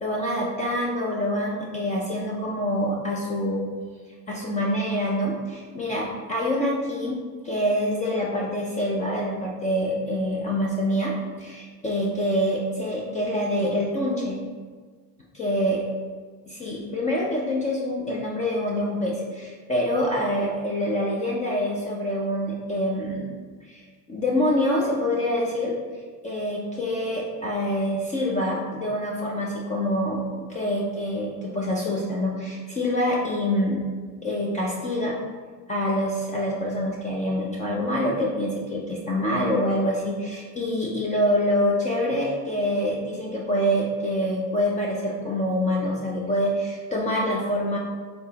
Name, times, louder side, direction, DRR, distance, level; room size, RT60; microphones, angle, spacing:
voice 1, 0.0-3.7 4.3-11.1 11.4-14.4 15.3-15.9 16.5-23.3 23.7-25.7 26.2-30.2 30.5-33.8 34.2-35.2 35.7-47.8, equal, 20° left, -3 dB, 0.3 m, -26 dB
3.8 x 3.5 x 2.8 m, 1.5 s
hypercardioid pair, 85°, 50 cm